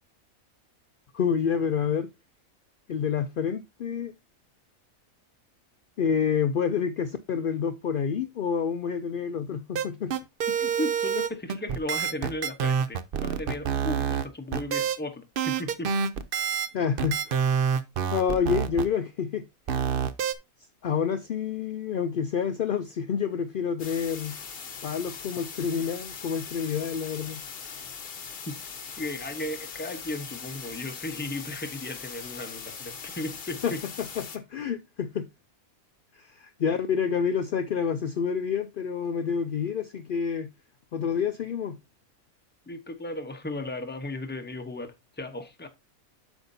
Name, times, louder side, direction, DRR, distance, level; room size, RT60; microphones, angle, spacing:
voice 1, 1.1-2.1 2.9-4.1 6.0-10.1 16.7-17.4 18.1-19.4 20.8-24.4 24.8-27.4 33.6-33.7 34.2-35.3 36.1-40.5 40.9-41.8, left 7 dB, 70° left, 0.5 m, -28 dB
sound 1, 9.7-14.3 14.5-15.0 15.4-16.7 17.0-18.9 19.7-20.3, right 7 dB, 55° right, 0.6 m, -27 dB
voice 2, 10.6-15.9 28.5-28.6 29.0-33.8 42.7-45.7, left 1 dB, 10° left, 0.8 m, -35 dB
sound 2, 23.8-34.4, left 6 dB, 45° left, 1.0 m, -40 dB
8.0 x 7.1 x 2.7 m
omnidirectional pair, 1.5 m